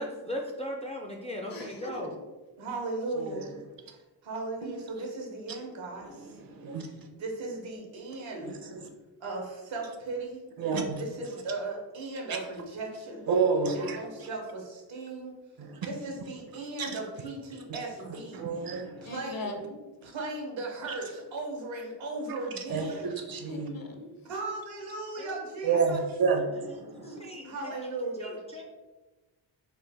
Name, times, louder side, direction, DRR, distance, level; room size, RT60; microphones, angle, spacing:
voice 1, 0.0-2.1 25.2-25.4 27.1-27.8 28.2-28.6, left 1 dB, 15° left, 0 dB, 0.3 m, -37 dB
voice 2, 1.5-2.2 19.0-19.8 23.5-24.1 27.0-27.7, left 2 dB, 50° left, 3 dB, 0.6 m, -41 dB
voice 3, 2.6-3.6 4.2-6.4 7.1-8.6 9.2-10.4 10.9-13.3 13.7-15.3 15.8-18.4 19.0-19.6 20.0-23.1 24.2-26.0 27.4-28.4, right 2 dB, 80° right, 0 dB, 0.9 m, -37 dB
voice 4, 6.4-6.9 8.4-8.8 10.6-11.0 13.3-14.3 15.6-15.8 16.8-17.0 17.7-17.8 18.1-19.1 20.0-20.1 22.7-23.7 25.6-27.2, right 5 dB, 50° right, 4 dB, 0.6 m, -30 dB
3.2 x 2.1 x 3.3 m, 1.2 s
cardioid pair, 70°, 46 cm